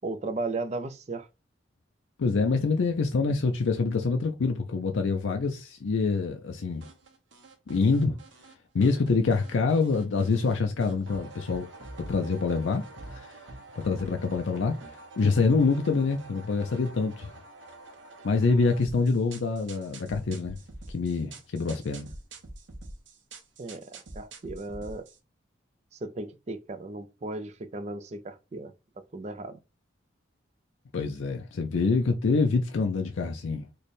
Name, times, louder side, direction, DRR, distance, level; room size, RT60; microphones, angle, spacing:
voice 1, 0.0-1.3 23.6-25.1 25.9-28.7 29.1-29.6, right 2 dB, 35° right, 0.4 m, -35 dB
voice 2, 2.2-6.9 7.7-8.2 8.7-11.7 12.0-12.8 13.1-13.3 13.8-17.3 18.2-20.6 20.9-22.1 30.9-33.7, left 4 dB, 80° left, 0.4 m, -26 dB
sound 1, 6.8-8.5 8.8-10.5 10.8-25.2, right 2 dB, 75° right, 0.8 m, -46 dB
3.2 x 2.1 x 4.1 m
head